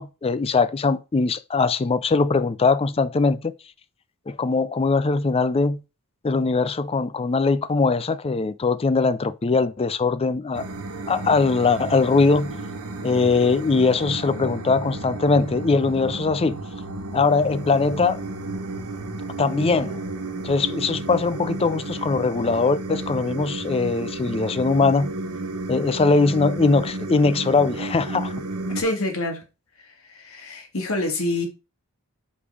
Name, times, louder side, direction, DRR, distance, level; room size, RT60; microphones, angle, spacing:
voice 1, 0.0-3.5 4.3-5.8 6.2-10.7 11.1-12.5 13.0-16.6 17.1-18.2 19.4-20.0 20.4-25.1 25.7-28.3, left 4 dB, 25° left, 0.4 m, -21 dB
sound 1, 10.5-28.8, right 2 dB, 85° right, 1.3 m, -32 dB
voice 2, 28.7-29.4 30.1-31.5, left 2 dB, 70° left, 1.9 m, -26 dB
5.2 x 5.2 x 4.8 m
head